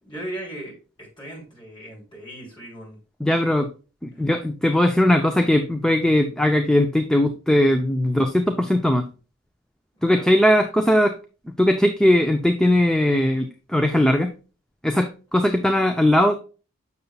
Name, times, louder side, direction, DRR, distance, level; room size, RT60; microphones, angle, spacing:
voice 1, 0.0-3.0 4.2-4.3 9.9-10.2, right 1 dB, 25° left, -4 dB, 3.6 m, -38 dB
voice 2, 3.2-3.7 4.0-9.0 10.0-11.2 11.6-14.3 14.8-16.3, left 1 dB, 5° left, 5 dB, 0.4 m, -19 dB
6.8 x 6.7 x 2.3 m, 0.34 s
head